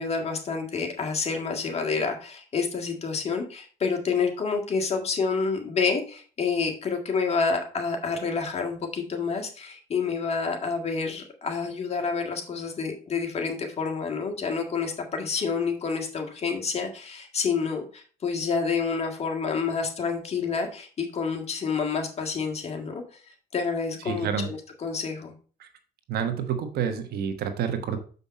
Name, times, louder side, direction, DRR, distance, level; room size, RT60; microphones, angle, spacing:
voice 1, 0.0-23.0 23.5-25.3, left 5 dB, 40° left, 3 dB, 1.9 m, -28 dB
voice 2, 24.0-24.5 25.6-25.7 26.1-28.0, right 7 dB, 70° right, 8 dB, 1.2 m, -28 dB
7.0 x 5.4 x 4.2 m, 0.39 s
cardioid pair, 110°, 17 cm